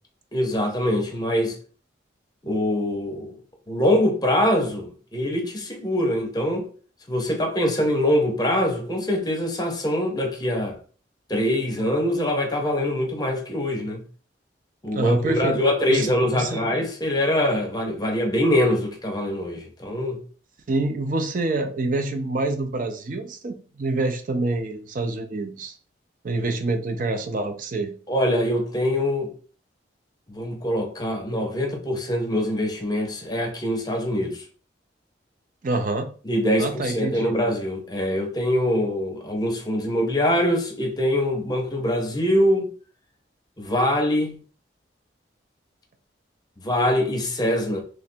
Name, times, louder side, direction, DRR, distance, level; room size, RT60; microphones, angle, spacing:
voice 1, 0.3-1.5 2.4-3.3 3.7-6.6 7.1-10.8 11.3-14.0 14.8-20.2 28.1-29.3 30.3-34.4 36.3-42.7 43.6-44.4 46.6-47.8, left 1 dB, 20° left, 0.8 m, -23 dB
voice 2, 14.9-15.6 15.9-16.7 20.7-25.8 26.2-27.9 35.6-36.1 36.6-37.3, right 2 dB, 45° right, 0.5 m, -26 dB
3.2 x 2.5 x 4.3 m
head